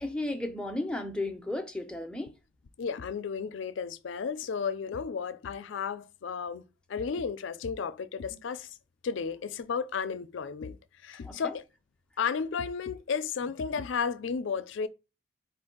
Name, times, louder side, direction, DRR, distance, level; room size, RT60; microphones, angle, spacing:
voice 1, 0.0-2.3 11.2-11.5, left 1 dB, 5° left, 0.5 m, -34 dB
voice 2, 2.8-6.6 6.9-8.7 9.0-10.8 11.0-11.6 12.2-14.9, left 6 dB, 80° left, 0.4 m, -33 dB
4.4 x 2.5 x 3.8 m
head